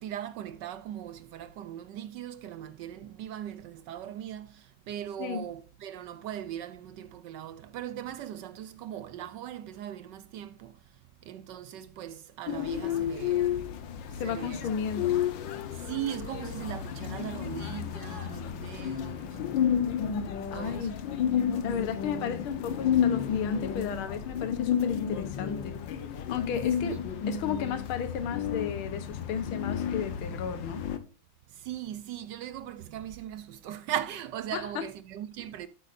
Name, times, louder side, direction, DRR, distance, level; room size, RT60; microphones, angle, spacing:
voice 1, 0.0-13.6 14.0-14.7 15.7-19.4 20.5-20.9 26.9-27.1 27.5-27.6 31.5-35.7, right 11 dB, 70° right, 1.1 m, -39 dB
sound 1, 12.5-31.0, left 8 dB, 70° left, 1.6 m, -31 dB
voice 2, 14.2-15.1 20.5-21.0 21.6-25.8 26.2-30.9 34.5-34.8, left 7 dB, 85° left, 1.9 m, -34 dB
13.0 x 8.3 x 2.6 m
omnidirectional pair, 2.3 m